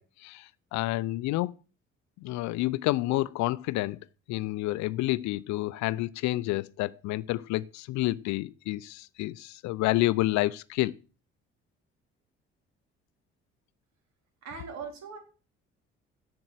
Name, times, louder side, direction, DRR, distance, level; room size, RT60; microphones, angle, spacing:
voice 1, 0.0-1.5 2.2-4.0 4.3-10.9, left 18 dB, 65° left, 0.5 m, -29 dB
voice 2, 14.4-15.2, right 5 dB, 60° right, 3.8 m, -40 dB
7.8 x 7.7 x 7.5 m
hypercardioid pair, 50°, 31 cm